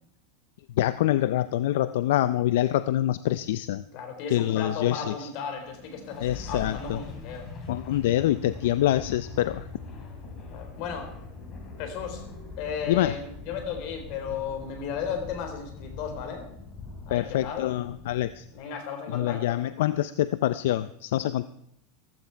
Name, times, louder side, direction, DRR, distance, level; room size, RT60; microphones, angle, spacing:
voice 1, 0.8-3.8 4.3-5.3 6.2-7.0 7.7-9.6 12.9-13.2 17.1-18.5 19.1-21.5, left 13 dB, 75° left, 14 dB, 0.5 m, -25 dB
voice 2, 3.9-7.5 10.5-11.1 11.8-12.2 12.6-16.5 17.1-17.7 18.5-19.6, left 6 dB, 50° left, 6 dB, 3.7 m, -35 dB
sound 1, 5.5-18.6, left 3 dB, 30° left, 4.0 m, -42 dB
14.5 x 14.5 x 4.6 m, 0.73 s
supercardioid pair, 145°, 0 cm